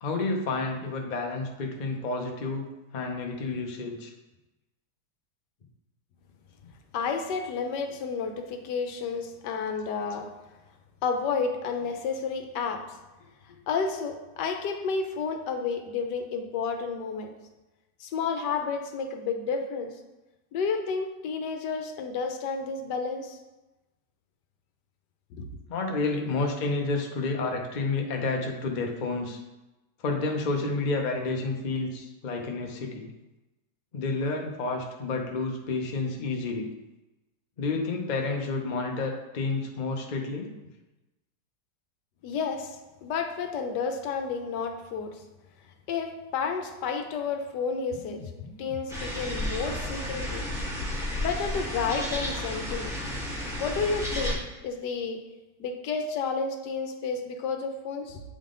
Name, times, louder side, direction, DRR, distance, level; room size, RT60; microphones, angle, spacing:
voice 1, 0.0-2.7 2.9-4.1 25.7-29.4 30.0-33.1 33.9-36.7 37.6-40.5, left 3 dB, 50° left, 2 dB, 0.5 m, -30 dB
voice 2, 6.9-10.3 11.0-12.8 13.7-17.3 18.0-19.9 20.5-23.4 25.4-25.5 42.2-45.2 45.9-50.5 51.2-52.9 53.6-54.4 54.6-55.2 55.6-58.2, left 5 dB, 80° left, 5 dB, 1.3 m, -31 dB
sound 1, 48.9-54.3, left 1 dB, ahead, 1.4 m, -32 dB
7.6 x 3.7 x 3.7 m, 1.0 s
omnidirectional pair, 1.8 m